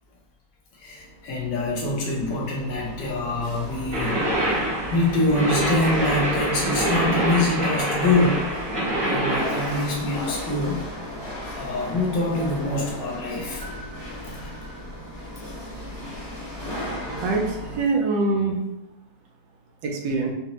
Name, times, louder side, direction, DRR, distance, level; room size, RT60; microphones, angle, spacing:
voice 1, 0.7-8.4 9.0-10.9 11.5-13.6, left 2 dB, 85° left, -3 dB, 1.7 m, -25 dB
Chatter / Hiss / Rattle, 0.9-17.8, equal, 30° left, 0.3 m, -36 dB
sound 1, 3.9-9.8, right 1 dB, 40° right, 1.1 m, -25 dB
voice 2, 17.2-18.7 19.8-20.3, right 3 dB, 80° right, 1 dB, 1.3 m, -24 dB
5.4 x 2.1 x 2.9 m, 0.88 s
omnidirectional pair, 1.9 m